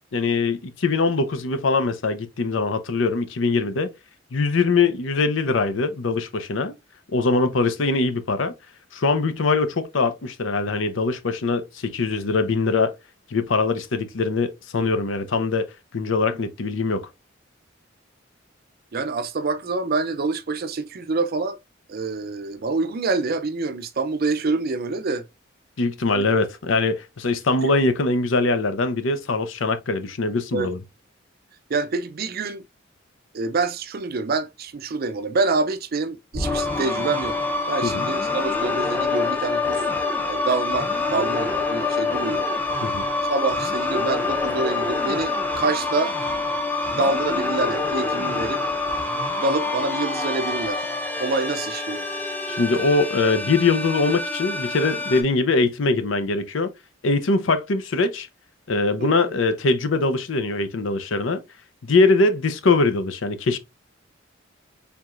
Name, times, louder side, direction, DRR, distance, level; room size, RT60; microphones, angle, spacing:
voice 1, 0.1-3.9 4.3-6.7 7.1-8.5 8.9-12.9 13.3-15.7 15.9-17.1 25.8-30.8 37.8-38.0 42.8-43.1 52.5-56.7 57.0-58.3 58.7-61.4 61.8-63.6, left 3 dB, 75° left, 0.6 m, -22 dB
voice 2, 18.9-21.6 21.9-25.2 26.1-26.2 30.5-30.7 31.7-32.6 33.3-37.4 37.7-39.8 40.3-42.5 43.3-46.1 46.9-48.6 49.4-50.9 51.2-52.1 59.0-59.1, right 3 dB, 50° right, 0.5 m, -26 dB
sound 1, 36.3-55.2, left 3 dB, 10° left, 0.7 m, -26 dB
4.7 x 3.5 x 2.4 m
head